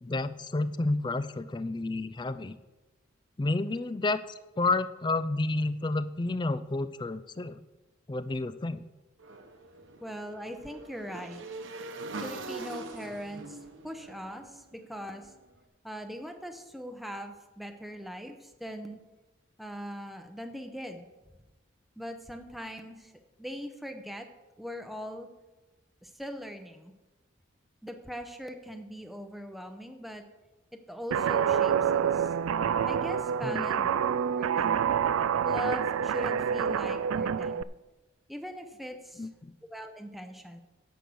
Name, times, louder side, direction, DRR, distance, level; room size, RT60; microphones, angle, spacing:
voice 1, 0.0-2.6 3.4-7.6 8.1-8.8 33.4-33.9 39.2-39.5, left 2 dB, 20° left, 14 dB, 0.4 m, -30 dB
Motorcycle / Engine, 9.2-15.3, right 3 dB, 65° right, 1.1 m, -43 dB
voice 2, 10.0-11.4 12.2-13.6 13.8-15.3 15.8-19.0 19.6-21.1 22.0-23.1 23.4-24.3 24.6-25.3 26.0-26.9 27.8-30.3 30.7-32.3 32.9-33.8 34.3-34.8 35.4-37.7 38.3-39.3 39.7-40.6, equal, ahead, 6 dB, 0.7 m, -41 dB
Guitar, 31.1-37.6, right 8 dB, 90° right, 0.3 m, -27 dB
10.5 x 6.4 x 7.0 m, 1.1 s
head